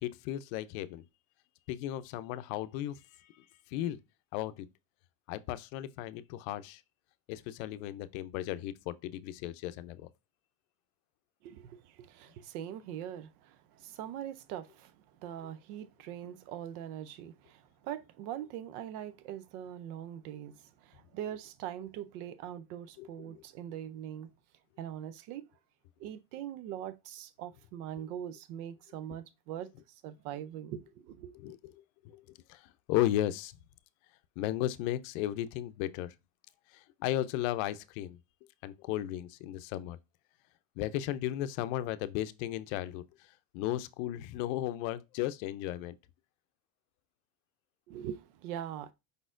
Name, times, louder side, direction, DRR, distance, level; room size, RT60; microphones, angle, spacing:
voice 1, 0.0-1.0 1.7-3.0 3.7-4.0 4.3-4.7 5.3-6.8 7.3-10.0 23.0-23.1 23.3-23.4 31.3-31.7 32.5-32.6 32.9-33.5 34.4-36.1 36.7-38.2 38.6-40.0 40.8-43.0 43.5-46.0, left 13 dB, 70° left, 0.5 m, -35 dB
voice 2, 11.4-15.0 15.2-24.3 24.8-25.5 26.0-31.4 47.9-48.9, right 10 dB, 85° right, 0.6 m, -42 dB
5.3 x 4.1 x 2.4 m
cardioid pair, 155°, 44 cm